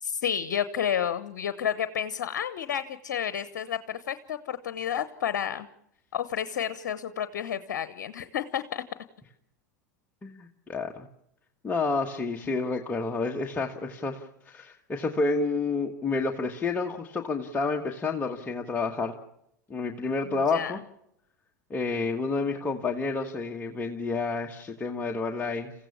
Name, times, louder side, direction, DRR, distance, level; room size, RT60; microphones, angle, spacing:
voice 1, 0.0-5.7 6.1-8.8 20.2-20.7, left 9 dB, 70° left, 13 dB, 1.0 m, -31 dB
voice 2, 10.2-11.1 11.6-19.1 19.7-20.8 21.7-25.7, left 3 dB, 15° left, 1 dB, 1.5 m, -29 dB
28.5 x 15.5 x 7.1 m, 0.77 s
hypercardioid pair, 90°, 10 cm